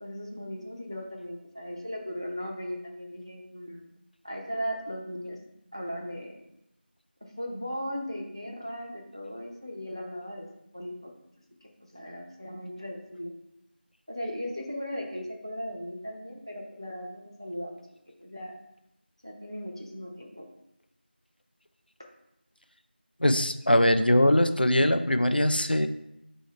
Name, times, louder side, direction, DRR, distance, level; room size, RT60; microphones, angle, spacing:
voice 1, 0.0-3.9 4.2-5.4 5.7-6.4 7.4-10.5 10.7-11.1 11.6-13.3 14.1-17.8 18.2-18.5 19.2-20.5, equal, 25° right, 0 dB, 0.5 m, -37 dB
voice 2, 23.2-25.9, left 1 dB, 60° left, 8 dB, 0.4 m, -22 dB
4.4 x 2.7 x 4.3 m, 0.82 s
figure-of-eight pair, 180°, 6 cm